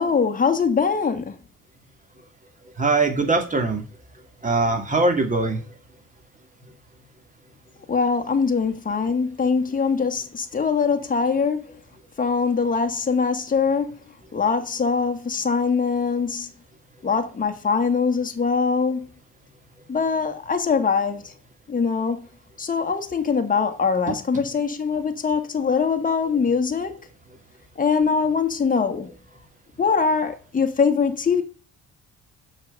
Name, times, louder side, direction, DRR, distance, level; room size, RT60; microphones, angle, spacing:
voice 1, 0.0-1.3 7.9-11.6 12.2-14.0 14.3-16.5 17.0-19.1 19.9-21.2 21.7-22.3 22.6-26.9 27.8-29.1 29.8-31.4, left 5 dB, 25° left, 1.5 m, -22 dB
voice 2, 2.8-3.8 4.4-5.6 9.2-9.3 24.1-24.4, right 3 dB, 25° right, 2.4 m, -22 dB
6.4 x 6.2 x 5.4 m
cardioid pair, 90°, 34 cm